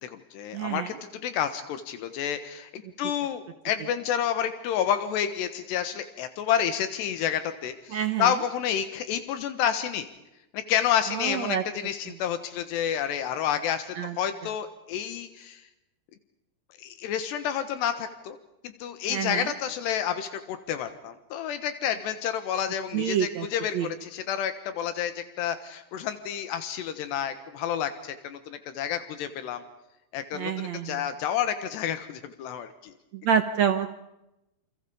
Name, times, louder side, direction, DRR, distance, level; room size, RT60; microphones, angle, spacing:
voice 1, 0.0-10.1 10.5-15.6 16.8-18.4 18.6-29.6 30.1-32.9, left 9 dB, 85° left, 10 dB, 3.5 m, -30 dB
voice 2, 0.5-0.9 7.9-8.3 11.1-11.6 14.0-14.1 19.1-19.5 22.9-23.5 23.7-23.9 30.3-31.0 33.1-34.0, right 8 dB, 80° right, 8 dB, 1.6 m, -27 dB
29.0 x 28.5 x 5.1 m, 0.91 s
omnidirectional pair, 4.8 m